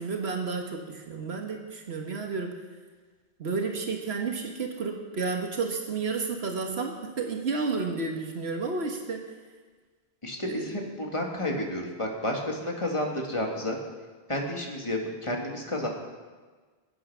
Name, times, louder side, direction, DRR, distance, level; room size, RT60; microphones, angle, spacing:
voice 1, 0.0-2.5 3.4-9.2 10.5-10.6, right 4 dB, 80° right, 2 dB, 1.6 m, -31 dB
voice 2, 10.2-13.8 14.3-15.9, left 1 dB, 30° left, 0 dB, 2.2 m, -31 dB
21.5 x 8.4 x 5.6 m, 1.4 s
omnidirectional pair, 1.1 m